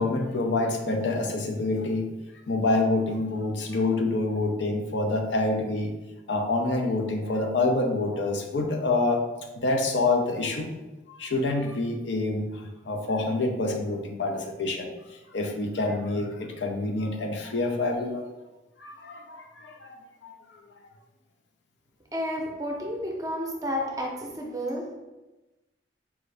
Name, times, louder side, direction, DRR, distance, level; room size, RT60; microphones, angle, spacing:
voice 1, 0.0-2.1 2.5-5.9 6.3-9.2 9.5-10.7 11.1-14.9 15.3-18.3 18.8-20.7, left 2 dB, 75° left, 3 dB, 0.6 m, -27 dB
voice 2, 22.1-24.9, equal, 20° right, -1 dB, 0.6 m, -31 dB
4.7 x 2.6 x 3.3 m, 1.1 s
head